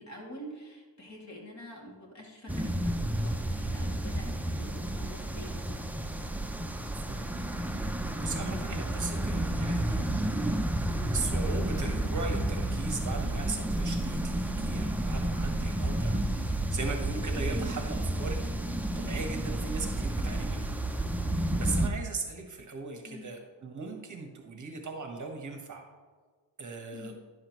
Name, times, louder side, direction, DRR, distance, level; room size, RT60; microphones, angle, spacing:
voice 1, 0.0-5.8 23.1-23.3 26.9-27.2, equal, 40° left, -2 dB, 2.4 m, -47 dB
sound 1, 2.5-21.9, right 1 dB, 5° right, 0.4 m, -31 dB
voice 2, 7.7-10.1 11.1-20.7 21.2-25.9 26.6-27.1, right 3 dB, 40° right, 3 dB, 1.2 m, -38 dB
11.0 x 7.5 x 3.0 m, 1.5 s
cardioid pair, 115°, 45 cm